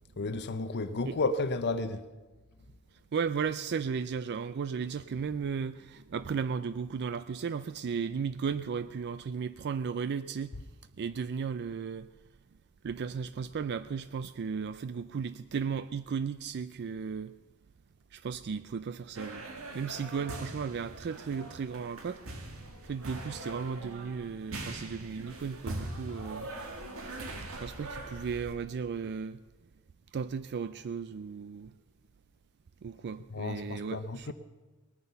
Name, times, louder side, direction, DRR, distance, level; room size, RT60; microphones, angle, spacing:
voice 1, 0.2-2.1 33.3-34.3, left 3 dB, 50° left, 0.7 m, -32 dB
voice 2, 3.1-10.6 11.0-12.1 12.8-17.3 18.1-19.5 19.7-22.2 22.6-26.5 27.5-29.4 30.1-31.7 32.8-34.3, right 6 dB, 50° right, 0.4 m, -35 dB
sound 1, 19.1-28.5, right 2 dB, 70° right, 2.0 m, -42 dB
19.0 x 9.6 x 6.9 m
head